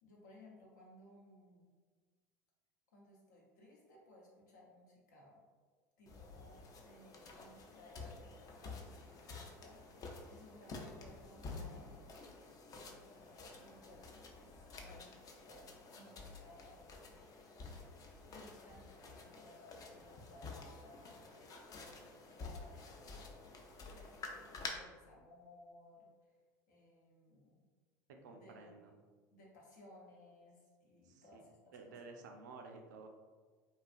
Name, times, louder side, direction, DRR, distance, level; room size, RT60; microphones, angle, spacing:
voice 1, 0.0-1.7 2.9-5.4 6.0-11.9 12.8-16.8 18.3-21.3 21.8-23.6 23.9-26.4 26.7-27.7 28.3-28.9 29.3-32.0, left 1 dB, 80° left, -3 dB, 0.8 m, -61 dB
sound 1, 6.1-24.7, left 3 dB, 40° left, 0.4 m, -51 dB
voice 2, 28.2-28.9 31.0-31.4 31.7-33.1, right 3 dB, 80° right, 3 dB, 0.3 m, -53 dB
2.6 x 2.3 x 2.4 m, 1.5 s
hypercardioid pair, 75°, 10 cm